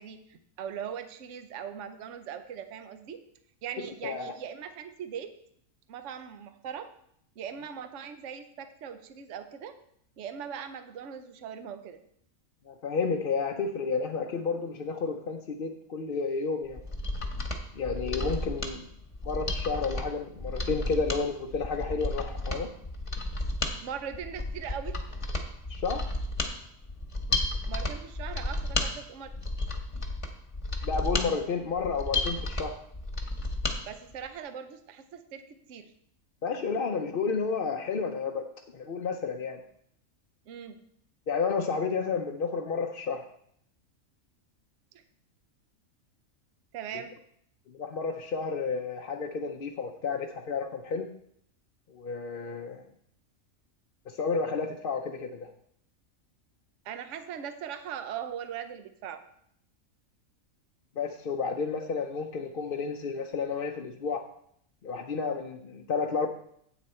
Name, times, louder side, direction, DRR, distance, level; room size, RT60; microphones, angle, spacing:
voice 1, 0.0-3.2 3.6-5.3 5.9-6.9 7.4-9.8 10.2-12.0 23.8-25.0 27.7-29.3 33.8-35.9 40.5-40.8 44.9-45.0 46.7-47.2 56.8-59.2, right 8 dB, 65° right, 9 dB, 1.0 m, -40 dB
voice 2, 4.0-4.3 12.7-16.8 17.8-18.8 19.2-22.7 25.7-26.0 30.8-32.8 36.4-38.4 38.7-39.6 41.3-43.2 47.7-51.1 51.9-52.8 54.2-55.5 61.0-64.2 64.8-66.3, left 5 dB, 50° left, 2 dB, 0.7 m, -31 dB
Mechanisms, 16.7-33.8 34.1-34.2, left 2 dB, 25° left, 1.1 m, -33 dB
9.9 x 8.2 x 4.3 m, 0.68 s
omnidirectional pair, 1.4 m